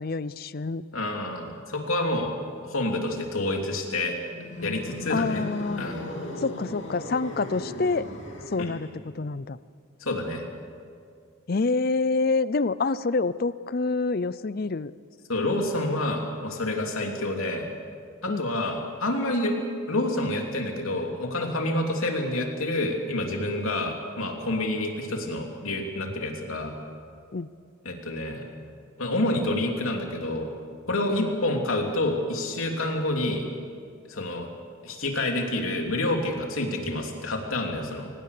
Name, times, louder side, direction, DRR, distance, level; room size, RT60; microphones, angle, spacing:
voice 1, 0.0-0.8 5.1-5.9 6.4-8.1 8.5-8.9 9.1-9.6 11.5-14.9 18.3-18.4 27.3-27.5 31.1-31.3, left 3 dB, 45° left, 17 dB, 0.5 m, -27 dB
voice 2, 0.9-2.3 2.6-4.1 4.6-5.4 5.8-6.0 8.6-8.7 10.0-10.4 15.3-17.7 18.2-19.5 19.9-26.7 27.8-28.4 29.0-30.5 30.9-33.4 34.1-34.5 34.8-38.1, left 1 dB, 80° left, 2 dB, 3.1 m, -28 dB
sound 1, 4.3-8.9, left 1 dB, 60° left, 3.1 m, -37 dB
24.5 x 19.5 x 6.7 m, 2.2 s
head